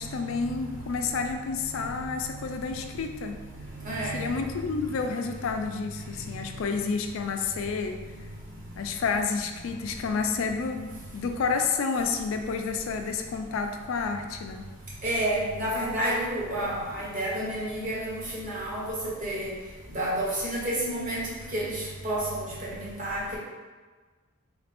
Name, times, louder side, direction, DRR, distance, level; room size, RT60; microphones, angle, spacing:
voice 1, 0.0-3.4 4.1-8.0 8.8-14.6, left 5 dB, 80° left, 5 dB, 0.3 m, -30 dB
voice 2, 3.8-4.3 15.0-19.0 19.2-19.5 19.9-23.4, right 1 dB, 40° right, -5 dB, 1.0 m, -30 dB
3.3 x 2.4 x 3.4 m, 1.3 s
head